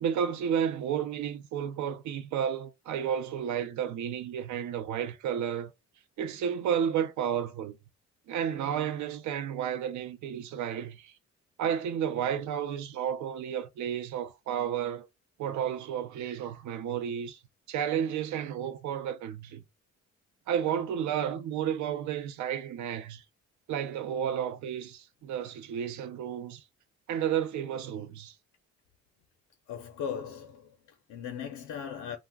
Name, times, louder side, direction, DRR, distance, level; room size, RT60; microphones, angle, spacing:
voice 1, 0.0-5.7 6.2-7.8 8.3-11.1 11.6-15.1 15.4-17.4 17.7-19.6 20.5-23.2 23.7-26.6 27.1-28.3, right 9 dB, 70° right, 0.5 m, -32 dB
voice 2, 29.7-32.2, left 7 dB, 80° left, 0.6 m, -38 dB
2.4 x 2.1 x 3.4 m
cardioid pair, 90°, 30 cm